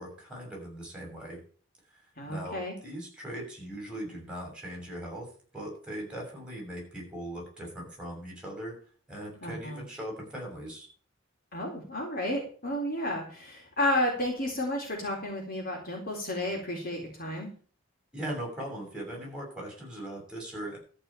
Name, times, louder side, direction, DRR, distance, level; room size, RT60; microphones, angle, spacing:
voice 1, 0.0-1.4 2.3-8.8 9.1-10.9 18.1-20.8, right 1 dB, 5° right, -1 dB, 6.9 m, -39 dB
voice 2, 2.2-2.7 9.4-9.9 11.5-17.5, left 1 dB, 45° left, 0 dB, 4.0 m, -32 dB
14.0 x 5.5 x 8.6 m, 0.41 s
head